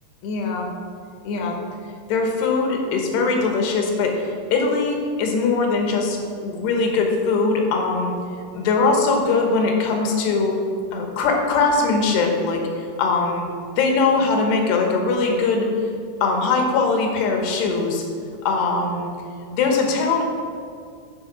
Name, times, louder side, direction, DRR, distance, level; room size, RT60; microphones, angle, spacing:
voice 1, 0.2-0.7 1.2-1.6 2.1-8.1 8.5-10.5 10.9-12.6 13.0-13.4 13.8-15.7 16.2-18.0 18.4-19.1 19.5-20.2, left 4 dB, 85° left, 2 dB, 3.2 m, -21 dB
10.5 x 5.2 x 5.9 m, 2.3 s
omnidirectional pair, 4.7 m